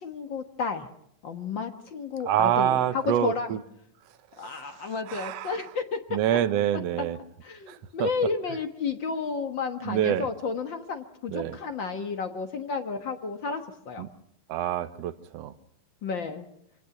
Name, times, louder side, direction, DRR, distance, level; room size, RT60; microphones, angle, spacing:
voice 1, 0.0-0.9 1.2-2.8 3.2-3.5 4.4-6.0 7.4-14.0 16.0-16.4, left 5 dB, 50° left, 7 dB, 1.5 m, -32 dB
voice 2, 2.2-3.6 4.4-5.6 6.1-7.2 7.7-8.3 9.8-10.3 11.3-11.6 14.0-14.1 14.5-15.5, right 11 dB, 65° right, 12 dB, 1.7 m, -27 dB
25.5 x 19.0 x 6.0 m, 0.74 s
omnidirectional pair, 3.8 m